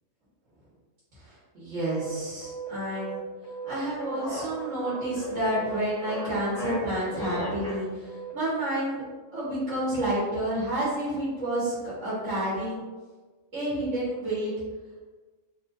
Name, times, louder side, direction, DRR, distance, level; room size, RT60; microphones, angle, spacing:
voice 1, 1.1-3.2 3.6-9.0 9.3-12.8 13.5-14.5, right 1 dB, 75° right, -11 dB, 1.7 m, -30 dB
sound 1, 1.9-5.2 5.5-8.3, right 6 dB, 65° left, 1.0 m, -39 dB
sound 2, 3.7-7.8, left 1 dB, 10° left, 1.2 m, -36 dB
4.4 x 3.0 x 2.6 m, 1.3 s
omnidirectional pair, 1.3 m